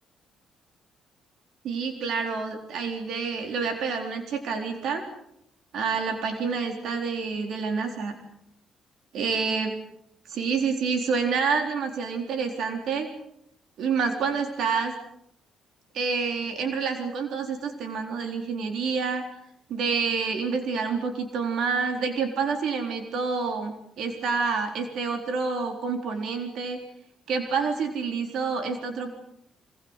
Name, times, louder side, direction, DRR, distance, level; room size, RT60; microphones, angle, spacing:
voice 1, 1.6-5.0 5.7-8.1 9.1-9.7 10.3-13.1 13.8-14.9 15.9-19.2 19.7-26.8 27.3-29.1, right 5 dB, 75° right, 5 dB, 4.0 m, -28 dB
25.5 x 20.5 x 8.2 m, 0.75 s
cardioid pair, 90°, 0 cm